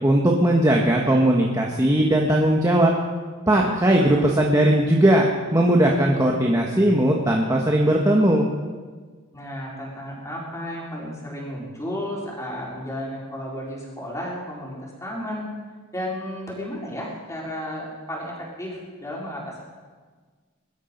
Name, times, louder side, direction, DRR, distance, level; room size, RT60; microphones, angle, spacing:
voice 1, 0.0-2.9 3.5-5.3 5.5-8.4, right 1 dB, 15° right, -1 dB, 1.4 m, -18 dB
voice 2, 9.3-15.5 15.9-19.6, equal, 15° left, -4 dB, 4.3 m, -33 dB
21.5 x 12.5 x 5.3 m, 1.5 s
head